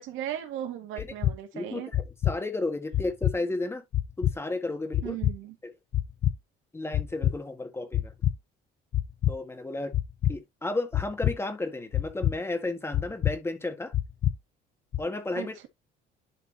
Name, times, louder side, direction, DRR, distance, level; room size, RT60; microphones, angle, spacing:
voice 1, 0.0-1.9 5.0-5.6 15.3-15.7, right 11 dB, 85° right, 2.1 m, -37 dB
sound 1, 1.0-1.3 1.9-2.3 2.9-3.3 3.9-4.3 4.9-5.3 5.9-6.3 6.9-7.3 7.9-8.3 8.9-9.3 9.9-10.3 10.9-11.3 11.9-12.3 12.9-13.3 13.9-14.3 14.9-15.0, left 12 dB, 40° left, 0.6 m, -26 dB
voice 2, 1.5-3.8 4.2-5.2 5.6-5.7 6.7-8.1 9.3-10.0 10.3-13.9 15.0-15.6, left 2 dB, 10° left, 1.7 m, -33 dB
11.5 x 4.3 x 2.8 m
cardioid pair, 145°, 20 cm